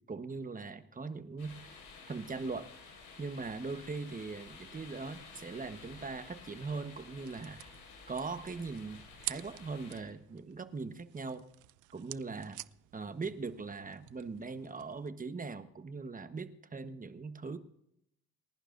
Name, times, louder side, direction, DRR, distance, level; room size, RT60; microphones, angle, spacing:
voice 1, 0.1-1.6 2.1-2.7 3.2-7.6 8.1-11.4 11.9-12.6 12.9-17.6, right 4 dB, 25° right, 10 dB, 1.1 m, -40 dB
sound 1, 1.4-10.0, left 4 dB, 85° left, 5.3 m, -53 dB
sound 2, 6.6-15.1, right 17 dB, 80° right, 0.5 m, -49 dB
29.0 x 11.0 x 2.6 m, 0.78 s
cardioid pair, 90°, 30 cm